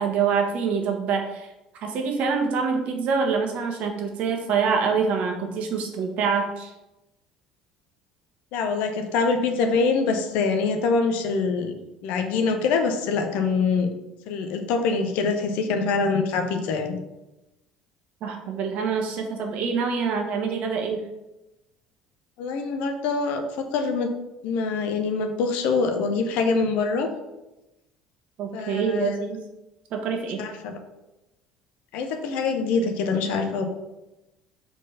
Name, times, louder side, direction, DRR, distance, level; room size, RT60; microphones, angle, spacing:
voice 1, 0.0-1.5 1.8-6.7 18.2-21.0 28.4-29.4 29.9-30.4, right 5 dB, 55° right, 3 dB, 1.3 m, -25 dB
voice 2, 8.5-11.7 12.0-13.9 14.3-17.0 22.4-24.1 24.4-27.1 28.5-29.2 30.4-30.8 31.9-33.6, left 4 dB, 60° left, 6 dB, 0.9 m, -24 dB
4.8 x 4.3 x 5.7 m, 0.97 s
figure-of-eight pair, 60°, 3 cm